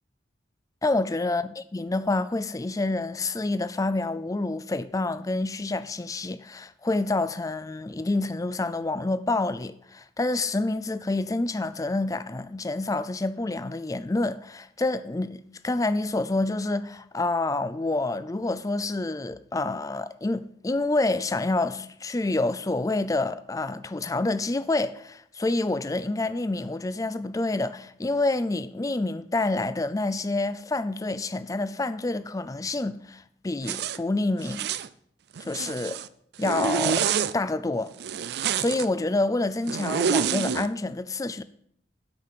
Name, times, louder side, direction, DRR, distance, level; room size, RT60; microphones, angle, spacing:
voice 1, 0.8-34.7 35.4-36.0 36.4-37.9 38.6-41.4, left 2 dB, 20° left, 0.4 m, -28 dB
Zipper (clothing), 33.6-34.0 34.4-34.9 35.4-36.1 36.4-37.3 38.0-38.9 39.7-40.7, right 7 dB, 65° right, 0.4 m, -27 dB
8.7 x 5.8 x 7.5 m
head